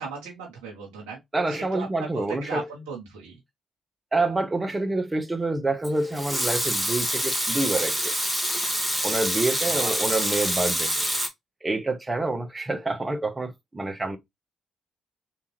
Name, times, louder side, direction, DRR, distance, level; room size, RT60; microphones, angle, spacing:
voice 1, 0.0-1.2 1.5-3.3 9.7-9.9, right 5 dB, 85° right, 1.0 m, -37 dB
voice 2, 1.3-2.7 4.1-8.1 9.0-11.1 11.6-14.2, right 2 dB, 25° right, 0.8 m, -27 dB
Water tap faucet / Sink (filling or washing) / Liquid, 5.8-11.3, equal, ahead, 1.2 m, -26 dB
3.4 x 2.9 x 3.0 m
hypercardioid pair, 45°, 0 cm